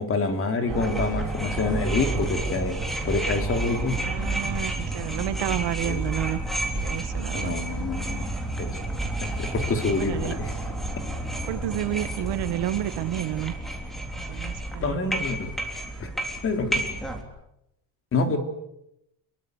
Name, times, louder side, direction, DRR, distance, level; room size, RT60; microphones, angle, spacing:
voice 1, 0.0-2.8 3.0-4.0 5.8-6.0 7.3-8.8 9.4-10.5 14.8-15.5 16.0-16.1 16.4-16.8 18.1-18.4, left 3 dB, 30° left, 6 dB, 3.5 m, -27 dB
sound 1, 0.7-17.2, right 2 dB, ahead, 3.8 m, -30 dB
voice 2, 0.7-1.1 1.9-2.0 3.9-6.4 6.7-7.6 9.9-10.4 11.5-13.5 14.2-15.1 18.3-18.4, right 14 dB, 80° right, 12 dB, 1.8 m, -31 dB
29.0 x 23.0 x 8.3 m, 0.82 s
cardioid pair, 175°, 42 cm